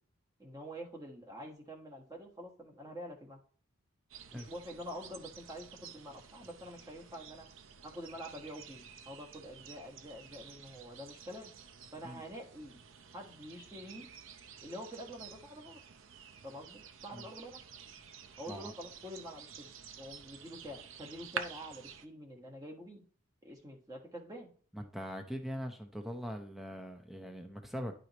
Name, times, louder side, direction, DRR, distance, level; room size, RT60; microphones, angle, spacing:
voice 1, 0.4-3.4 4.3-7.5 7.8-11.5 11.9-12.8 13.1-14.1 14.6-15.8 16.4-17.6 18.4-23.0 23.4-24.5, equal, 15° right, 0 dB, 1.4 m, -47 dB
sound 1, 4.1-22.1, right 7 dB, 65° right, 0.7 m, -50 dB
voice 2, 24.7-27.9, equal, ahead, 3 dB, 0.8 m, -41 dB
10.5 x 4.9 x 3.0 m, 0.44 s
head